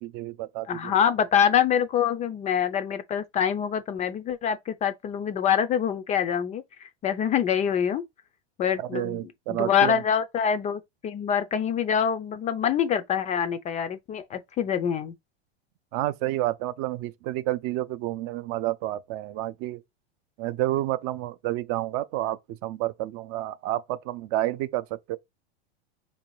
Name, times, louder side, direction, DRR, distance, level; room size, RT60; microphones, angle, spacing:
voice 1, 0.0-0.9 8.9-10.0 15.9-19.8 20.4-25.2, right 15 dB, 45° right, 0.4 m, -30 dB
voice 2, 0.7-8.0 8.6-9.2 9.5-15.1, left 8 dB, 25° left, 0.3 m, -25 dB
4.6 x 2.7 x 3.0 m
hypercardioid pair, 110°, 32 cm